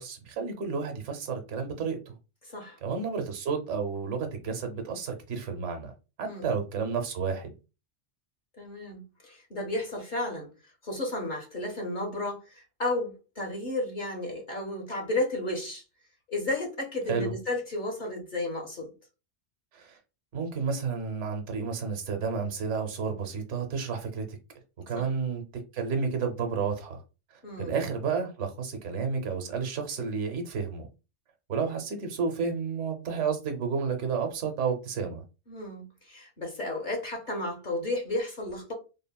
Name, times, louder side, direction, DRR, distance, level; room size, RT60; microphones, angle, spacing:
voice 1, 0.0-2.1 2.8-5.9 6.2-7.5 17.1-17.3 19.7-20.0 20.3-24.4 24.9-25.4 25.7-27.0 27.6-30.9 31.5-35.2, right 5 dB, 90° right, 1.0 m, -31 dB
voice 2, 2.4-2.8 6.2-6.5 8.5-10.5 10.8-15.8 16.3-18.9 24.9-25.1 27.4-27.7 35.5-38.7, left 2 dB, 45° left, 0.8 m, -33 dB
3.4 x 2.1 x 2.2 m
omnidirectional pair, 1.2 m